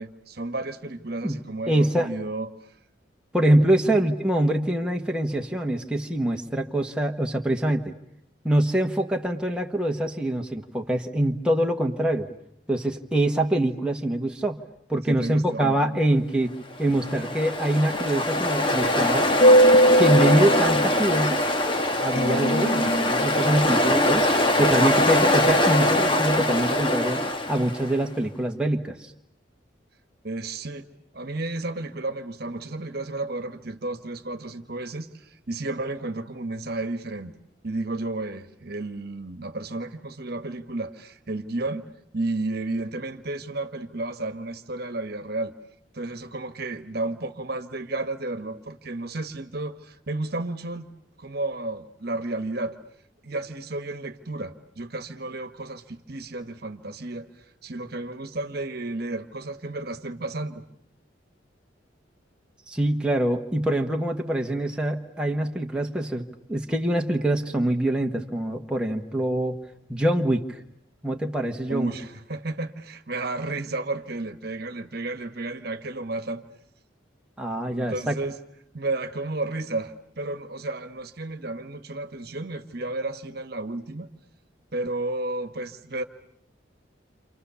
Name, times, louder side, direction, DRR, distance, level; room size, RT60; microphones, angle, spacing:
voice 1, 0.0-2.7 3.8-4.0 15.1-15.8 30.2-30.9 31.1-37.4 37.6-41.9 42.1-45.5 45.9-50.9 51.2-52.8 53.2-60.6 71.7-76.4 77.7-78.4 78.7-84.1 84.7-86.0, right 2 dB, 55° right, 9 dB, 1.4 m, -32 dB
voice 2, 1.7-2.1 3.3-7.9 8.4-12.3 12.7-14.6 14.9-16.5 16.8-19.3 20.0-21.4 22.0-24.3 24.6-27.2 27.5-29.1 62.7-69.6 69.9-70.6 71.0-71.9 77.4-78.1, right 1 dB, 5° right, 1 dB, 1.4 m, -24 dB
Ocean, 16.8-27.9, left 1 dB, 25° left, 1.5 m, -21 dB
29.5 x 27.0 x 7.0 m, 0.72 s
head